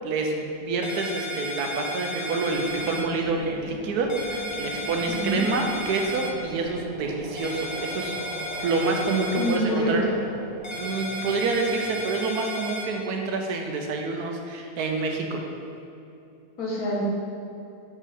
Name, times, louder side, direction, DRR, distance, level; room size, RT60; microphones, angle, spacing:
voice 1, 0.0-8.2 8.6-10.0 10.7-15.4, right 3 dB, 90° right, 2 dB, 1.3 m, -27 dB
sound 1, 0.8-3.0 4.1-6.3 7.4-9.6 10.6-12.8, left 1 dB, 30° left, 0.6 m, -34 dB
sound 2, 2.5-13.0, right 2 dB, 65° right, 1.1 m, -41 dB
voice 2, 5.1-5.5 9.4-10.2 16.6-17.0, equal, 75° left, -6 dB, 2.0 m, -26 dB
8.3 x 3.7 x 4.2 m, 2.7 s
omnidirectional pair, 1.6 m